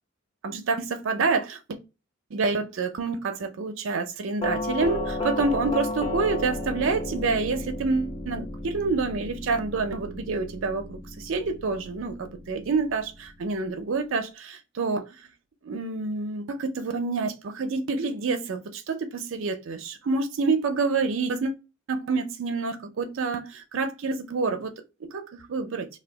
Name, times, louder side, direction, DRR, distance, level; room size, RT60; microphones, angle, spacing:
voice 1, 0.4-1.8 2.3-15.1 15.6-21.6 21.9-24.7 25.1-25.9, right 4 dB, 80° right, 0.5 m, -28 dB
Doorbell, 4.4-13.3, left 2 dB, 25° left, 0.5 m, -33 dB
2.8 x 2.2 x 3.3 m
head